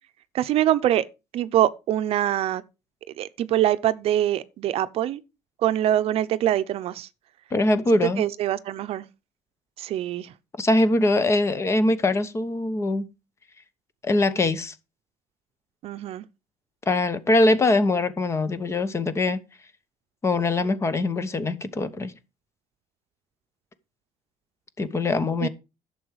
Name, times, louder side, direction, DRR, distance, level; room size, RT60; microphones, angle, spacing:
voice 1, 0.3-1.1 1.3-2.6 3.2-5.2 5.6-7.1 7.9-9.0 9.8-10.3 15.8-16.2 25.4-25.5, right 12 dB, 55° right, 0.7 m, -24 dB
voice 2, 7.5-8.3 10.6-13.1 14.0-14.7 16.9-19.4 20.2-22.1 24.8-25.5, left 2 dB, 25° left, 1.0 m, -22 dB
11.0 x 7.0 x 4.7 m
cardioid pair, 135°, 12 cm